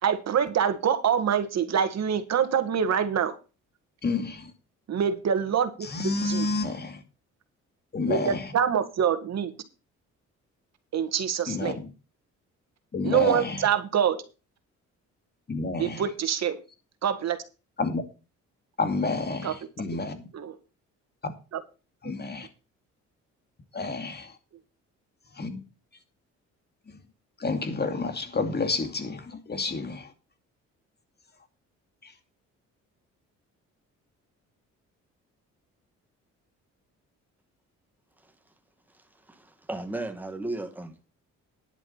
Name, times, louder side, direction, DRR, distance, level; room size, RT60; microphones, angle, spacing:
voice 1, 0.0-3.4 4.9-5.7 6.2-6.5 8.1-9.5 10.9-11.8 13.0-14.2 15.8-16.6 17.0-17.4 19.4-19.6 19.9-20.0 20.3-20.5 21.5-21.6, right 8 dB, 60° right, 1.9 m, -25 dB
voice 2, 4.0-4.5 5.8-7.0 7.9-8.5 11.5-11.8 12.9-13.6 15.5-16.0 17.8-18.0 18.8-20.3 21.2-21.3 22.0-22.5 23.7-24.3 25.4-25.6 27.4-30.1, left 3 dB, 35° left, 2.4 m, -29 dB
voice 3, 38.9-41.1, right 2 dB, 5° right, 2.1 m, -36 dB
10.5 x 7.5 x 5.6 m
cardioid pair, 90°, 30 cm